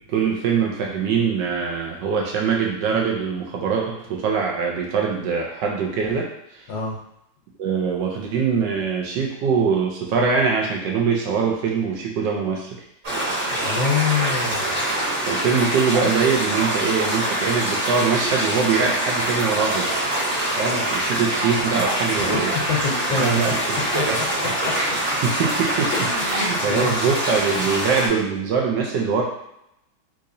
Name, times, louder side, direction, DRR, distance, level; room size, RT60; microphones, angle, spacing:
voice 1, 0.1-6.3 6.5-6.6 7.6-12.7 15.2-19.9 20.6-22.5 23.2-24.2 24.7-24.9 25.2-25.9 26.2-29.2, right 5 dB, 75° right, -1 dB, 1.2 m, -23 dB
sound 1, 13.0-28.1, right 1 dB, 45° right, 1.6 m, -24 dB
voice 2, 13.6-14.8 21.2-21.3 22.2-22.4 22.7-23.4 23.8-25.0 25.9-26.9, left 5 dB, 75° left, -1 dB, 1.5 m, -26 dB
3.6 x 3.0 x 2.5 m, 0.79 s
omnidirectional pair, 2.1 m